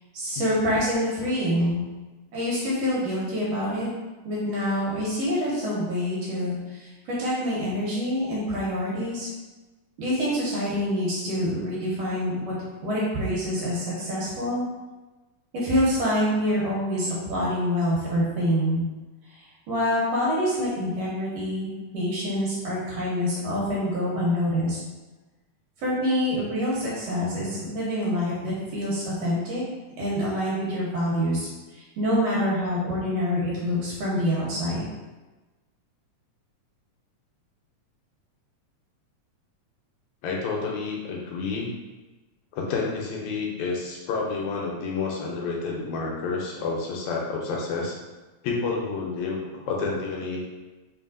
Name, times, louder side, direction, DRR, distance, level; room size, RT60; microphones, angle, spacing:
voice 1, 0.1-1.8 2.3-3.9 4.2-9.3 10.0-12.6 12.8-14.6 15.5-18.8 19.3-24.8 25.8-29.6 30.0-34.9, equal, 65° right, -6 dB, 1.8 m, -26 dB
voice 2, 40.2-41.7 42.5-48.0 48.4-50.4, left 4 dB, 80° left, -2 dB, 1.9 m, -29 dB
4.0 x 3.6 x 2.4 m, 1.2 s
omnidirectional pair, 3.4 m